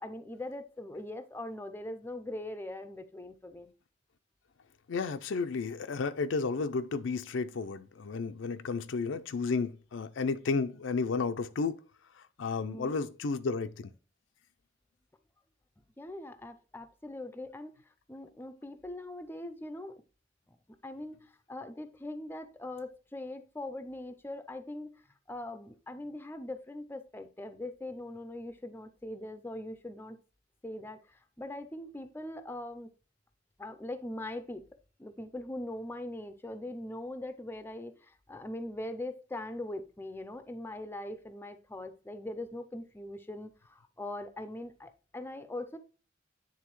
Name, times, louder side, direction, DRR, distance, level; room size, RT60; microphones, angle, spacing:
voice 1, 0.0-3.7 12.6-13.0 15.8-17.7 18.1-19.9 20.8-25.0 25.3-30.2 30.6-32.9 33.6-34.6 35.0-45.8, left 1 dB, 10° left, 0.4 m, -41 dB
voice 2, 4.9-11.8 12.1-13.9, left 4 dB, 80° left, 0.5 m, -32 dB
9.5 x 3.6 x 3.0 m
head